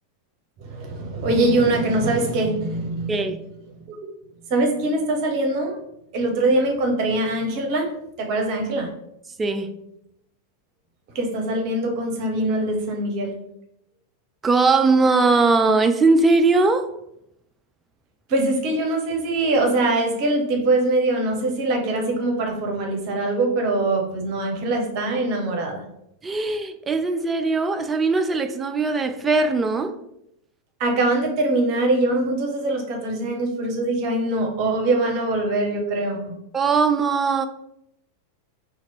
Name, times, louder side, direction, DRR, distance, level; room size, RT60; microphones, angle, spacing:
voice 1, 0.6-3.1 3.9-4.0 4.5-5.8 6.1-7.9 8.2-8.9 11.1-13.3 18.3-25.8 30.8-36.3, right 2 dB, 45° right, 0.7 m, -23 dB
voice 2, 3.1-3.5 9.4-9.7 14.4-16.9 26.2-30.0 36.5-37.5, right 3 dB, 15° right, 0.3 m, -20 dB
2.9 x 2.4 x 4.3 m
figure-of-eight pair, 90°, 0 cm